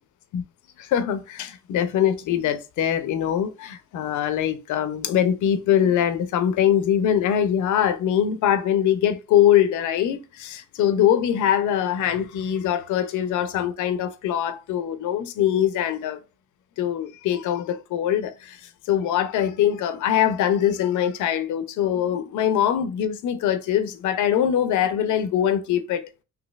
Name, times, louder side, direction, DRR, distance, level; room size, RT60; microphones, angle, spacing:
voice 1, 0.8-16.2 16.8-18.6 18.9-26.2, left 10 dB, 80° left, 0.6 m, -23 dB
4.0 x 2.8 x 2.3 m
cardioid pair, 90°, 30 cm